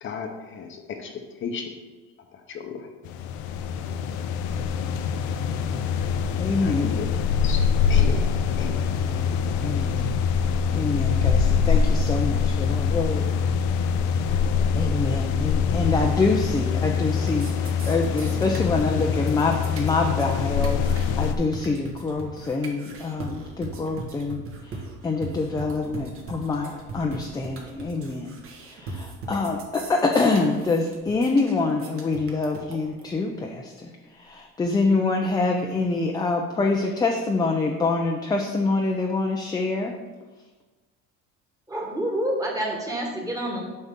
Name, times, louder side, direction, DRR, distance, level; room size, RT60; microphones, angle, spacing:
voice 1, 0.0-1.7 2.3-2.9 6.6-7.1 7.4-8.2 8.6-8.8, left 6 dB, 40° left, 4 dB, 0.8 m, -35 dB
sound 1, 3.1-21.4, left 6 dB, 75° left, 0.6 m, -24 dB
voice 2, 6.4-6.9 9.0-10.2 10.7-13.3 14.7-24.8 25.0-28.4 28.6-39.9, left 3 dB, 15° left, 2 dB, 0.5 m, -26 dB
sound 2, 16.4-16.8 17.1-33.1, right 3 dB, 45° right, 1.4 m, -39 dB
voice 3, 41.7-43.6, right 1 dB, 10° right, -1 dB, 1.5 m, -28 dB
8.2 x 5.3 x 3.6 m, 1.3 s
cardioid pair, 130°, 29 cm